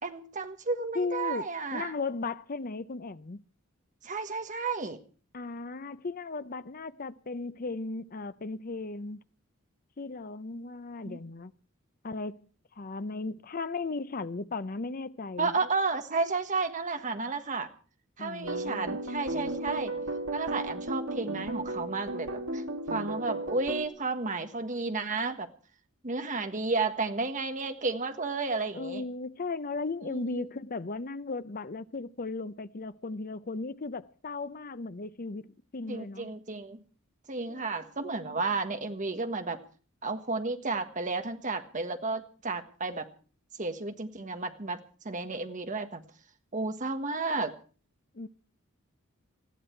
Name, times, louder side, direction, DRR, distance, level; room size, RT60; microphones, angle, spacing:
voice 1, 0.0-1.9 4.0-5.0 11.0-11.2 15.4-17.7 18.2-19.9 20.3-22.6 22.9-25.5 26.0-29.0 30.0-30.5 35.9-36.8 37.3-39.6 40.0-43.1 43.6-46.0 46.5-47.5, right 3 dB, 35° right, 1.4 m, -32 dB
voice 2, 0.9-3.4 5.3-9.2 10.0-11.5 12.0-12.5 12.8-15.5 18.2-19.0 28.7-36.3 37.5-37.7 38.1-38.4 48.1-48.3, left 3 dB, 40° left, 0.7 m, -36 dB
sound 1, 18.4-23.9, right 2 dB, 65° right, 1.7 m, -35 dB
20.0 x 14.5 x 4.5 m
head